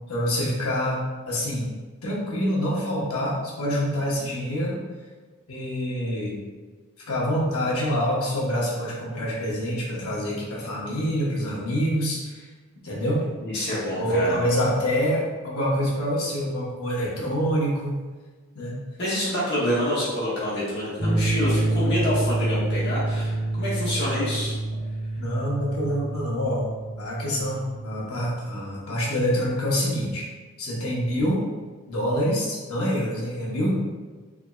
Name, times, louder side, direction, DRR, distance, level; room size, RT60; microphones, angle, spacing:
voice 1, 0.1-1.7 2.0-4.8 5.5-6.4 7.1-12.5 12.8-13.2 14.0-18.0 18.5-18.8 25.2-26.7 27.0-30.2 30.6-31.4 31.9-33.8, equal, 80° left, -4 dB, 1.1 m, -26 dB
voice 2, 13.4-14.5 19.0-24.5, left 1 dB, 50° left, -9 dB, 1.4 m, -27 dB
sound 1, 21.0-28.2, right 2 dB, 15° left, 0.6 m, -27 dB
3.9 x 3.5 x 2.3 m, 1.4 s
head